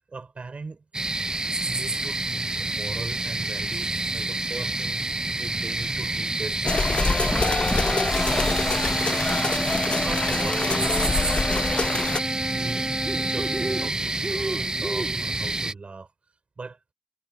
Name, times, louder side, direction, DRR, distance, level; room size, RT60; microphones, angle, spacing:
voice 1, 0.1-0.8 1.6-5.0 5.4-9.3 9.8-11.0 11.4-11.7 12.4-16.1 16.6-16.8, right 4 dB, 80° right, 7.3 m, -39 dB
sound 1, 0.9-15.7, right 2 dB, 40° right, 0.6 m, -28 dB
sound 2, 6.6-12.2, left 3 dB, 60° left, 0.8 m, -25 dB
sound 3, 7.0-13.9, right 1 dB, 10° right, 1.3 m, -32 dB
wide cardioid pair, 65°, 2 cm